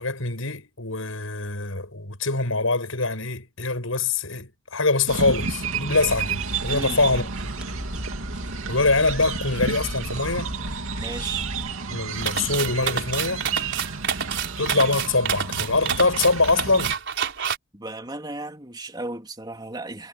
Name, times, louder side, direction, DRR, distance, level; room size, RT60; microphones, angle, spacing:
voice 1, 0.0-7.3 8.7-10.5 11.9-13.5 14.6-17.0, left 3 dB, 80° left, 6.2 m, -24 dB
sound 1, 5.1-16.9, right 5 dB, 80° right, 2.6 m, -31 dB
sound 2, 6.0-11.7, equal, 5° right, 3.0 m, -36 dB
voice 2, 6.7-7.2 11.0-11.5 17.7-20.1, right 2 dB, 20° right, 3.3 m, -35 dB
sound 3, 12.2-17.6, right 8 dB, 60° right, 4.6 m, -28 dB
head